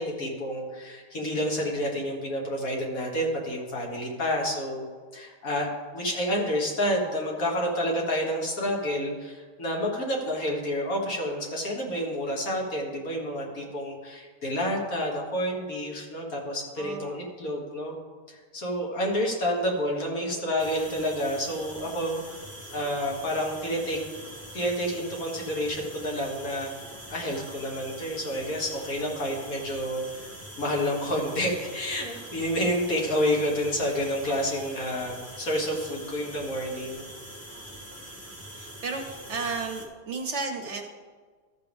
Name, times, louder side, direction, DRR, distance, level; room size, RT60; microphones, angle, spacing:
voice 1, 0.0-4.9 5.1-18.0 18.3-22.4 22.7-24.0 24.5-26.7 27.1-37.1, equal, 65° left, -1 dB, 2.0 m, -29 dB
voice 2, 16.8-17.2 38.1-38.2 38.5-40.8, right 4 dB, 55° right, 4 dB, 1.0 m, -33 dB
sound 1, 20.6-39.9, right 1 dB, 10° left, 1.4 m, -43 dB
13.5 x 6.6 x 3.5 m, 1.5 s
omnidirectional pair, 1.6 m